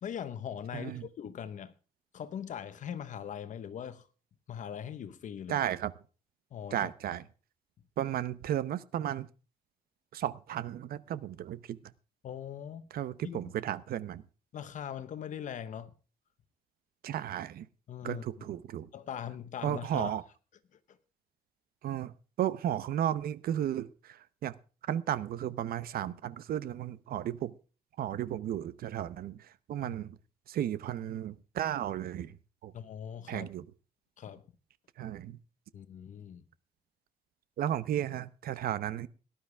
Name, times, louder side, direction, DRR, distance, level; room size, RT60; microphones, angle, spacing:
voice 1, 0.0-1.7 2.1-4.1 4.5-5.6 6.5-6.9 12.2-12.8 13.2-13.4 14.5-15.9 17.9-18.3 18.9-20.2 32.7-33.5 34.2-34.5 35.7-36.4, left 9 dB, 55° left, 1.0 m, -40 dB
voice 2, 0.7-1.0 5.5-5.9 6.7-7.2 8.0-9.3 10.1-11.8 12.9-14.2 17.0-17.7 18.0-18.9 19.6-20.2 21.8-23.9 24.4-24.5 24.9-27.5 28.0-29.4 29.7-30.2 30.5-32.3 32.6-32.7 33.3-33.6 35.0-35.4 37.6-39.1, right 11 dB, 75° right, 0.8 m, -34 dB
18.0 x 11.5 x 3.4 m
wide cardioid pair, 180°, 16 cm